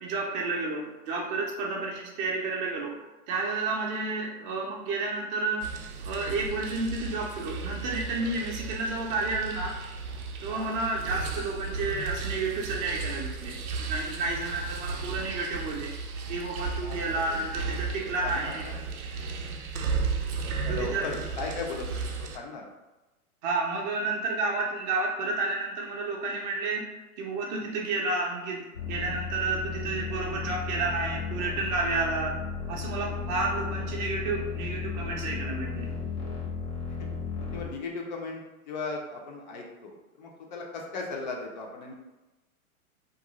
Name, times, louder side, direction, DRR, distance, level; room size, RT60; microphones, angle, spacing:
voice 1, 0.0-3.0 3.3-5.7 6.0-9.8 10.4-15.9 16.3-18.6 20.7-21.1 23.4-26.9 27.2-32.4 32.7-35.9, right 3 dB, 35° right, -1 dB, 0.5 m, -31 dB
sound 1, 5.6-22.4, right 4 dB, 80° right, 0.6 m, -35 dB
voice 2, 16.8-18.5 20.6-22.7 27.6-27.8 33.1-33.4 36.9-37.0 37.4-38.4 38.7-41.9, left 4 dB, 35° left, 0 dB, 0.4 m, -38 dB
sound 2, 28.7-37.7, left 5 dB, 90° left, 1.0 m, -34 dB
2.5 x 2.3 x 2.8 m, 1.1 s
hypercardioid pair, 115°, 43 cm